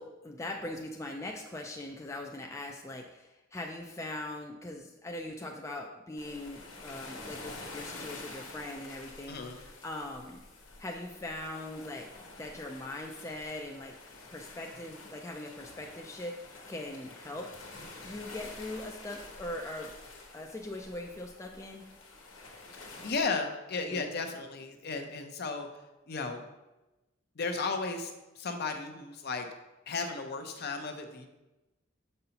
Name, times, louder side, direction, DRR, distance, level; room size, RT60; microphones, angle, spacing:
voice 1, 0.0-10.4 10.8-12.1 12.4-13.9 14.3-17.6 18.0-19.9 20.3-21.9 23.9-24.1, left 1 dB, 15° left, 1 dB, 0.3 m, -41 dB
sound 1, 6.2-23.2, left 3 dB, 80° left, 1.2 m, -48 dB
voice 2, 22.8-25.7 26.1-26.4 27.4-29.5 29.9-31.3, left 4 dB, 50° left, 5 dB, 0.6 m, -35 dB
6.6 x 5.4 x 2.9 m, 1.0 s
head